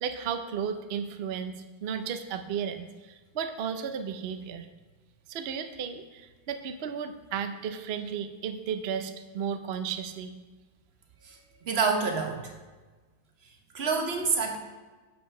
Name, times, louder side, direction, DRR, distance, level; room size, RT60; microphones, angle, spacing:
voice 1, 0.0-1.5 1.8-4.7 5.3-10.3, right 7 dB, 65° right, 8 dB, 0.6 m, -34 dB
voice 2, 11.2-12.5 13.7-14.6, right 5 dB, 40° right, 3 dB, 1.1 m, -28 dB
7.7 x 5.6 x 5.4 m, 1.3 s
omnidirectional pair, 1.9 m